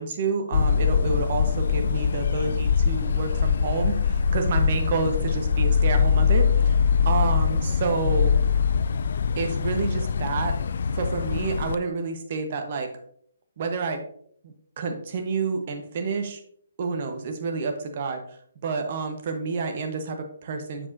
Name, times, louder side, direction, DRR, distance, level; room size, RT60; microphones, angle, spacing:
voice 1, 0.0-6.7 7.0-8.4 9.4-10.5 11.0-12.9 13.6-14.0 14.4-16.4 16.8-18.2 18.6-20.9, right 4 dB, 45° right, 5 dB, 1.1 m, -29 dB
sound 1, 0.5-11.8, left 6 dB, 60° left, 0.3 m, -23 dB
7.3 x 7.2 x 2.7 m, 0.63 s
figure-of-eight pair, 135°, 0 cm